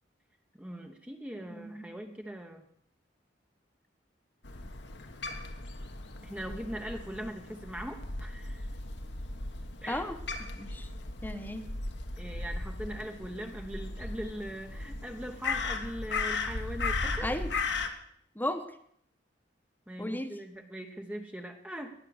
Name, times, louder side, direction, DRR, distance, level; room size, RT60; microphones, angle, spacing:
voice 1, 0.6-2.6 6.2-8.7 9.8-10.0 12.2-17.4 19.9-21.9, equal, 10° right, 4 dB, 0.9 m, -40 dB
voice 2, 1.5-1.9 9.9-10.1 10.6-10.9 11.2-11.6 17.2-17.5 18.3-18.6 20.0-20.3, left 1 dB, 10° left, 8 dB, 1.1 m, -34 dB
Crow, 4.4-17.9, left 3 dB, 70° left, 1.4 m, -37 dB
20.0 x 7.5 x 6.4 m, 0.66 s
head